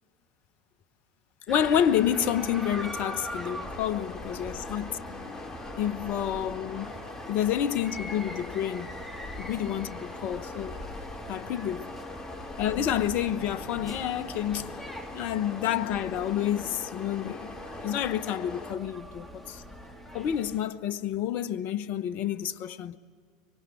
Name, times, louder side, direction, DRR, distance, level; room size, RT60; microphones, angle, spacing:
voice 1, 1.5-7.0 7.3-8.9 9.4-10.8 11.3-11.9 12.6-14.7 15.1-19.6 20.1-23.0, left 10 dB, 50° left, 1.1 m, -29 dB
sound 1, 1.5-20.6, equal, 5° left, 4.0 m, -42 dB
sound 2, 1.6-18.7, left 3 dB, 25° left, 3.0 m, -42 dB
25.5 x 24.0 x 8.5 m
hypercardioid pair, 80°, 3 cm